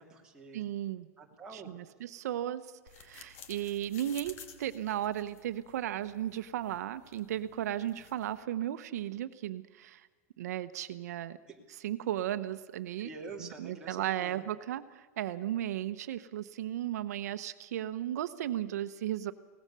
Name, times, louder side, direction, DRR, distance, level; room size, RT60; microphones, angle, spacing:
voice 1, 0.0-0.6 1.2-1.7 11.5-11.6 13.0-14.4, right 4 dB, 10° right, -2 dB, 2.5 m, -46 dB
voice 2, 0.5-1.1 1.5-2.7 3.0-10.1 10.4-11.4 11.8-13.1 13.6-19.3, right 12 dB, 80° right, 12 dB, 0.9 m, -35 dB
sound 1, 2.9-8.4, left 7 dB, 55° left, 2.2 m, -53 dB
23.5 x 18.5 x 6.8 m, 1.3 s
supercardioid pair, 165°, 9 cm